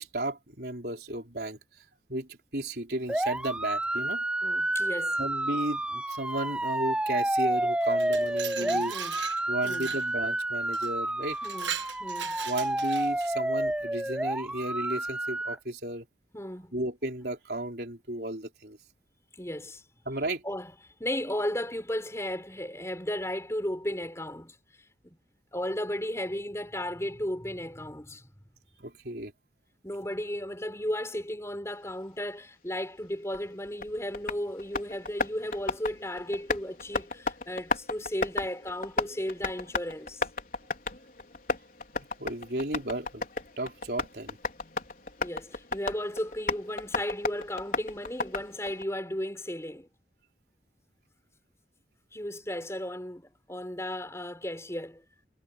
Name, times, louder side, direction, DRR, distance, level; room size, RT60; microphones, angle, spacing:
voice 1, 0.0-1.6 2.1-4.2 5.2-8.9 9.5-11.4 12.4-16.0 16.7-18.8 20.1-20.4 28.8-29.3 41.9-43.3 43.6-44.4, right 1 dB, 60° right, 4.8 m, -34 dB
sound 1, 3.1-15.5, right 1 dB, 5° right, 0.4 m, -30 dB
voice 2, 4.4-5.2 8.6-9.2 9.6-9.9 11.4-11.7 12.0-12.4 16.3-16.8 19.4-19.8 20.4-20.7 21.0-25.2 25.5-28.3 29.8-40.2 45.2-49.9 52.1-55.0, left 1 dB, 15° left, 5.0 m, -35 dB
Glass, 7.8-10.1 10.7-10.9 11.3-13.3, right 9 dB, 90° right, 1.4 m, -38 dB
Tap, 33.3-48.8, left 3 dB, 50° left, 4.6 m, -35 dB
head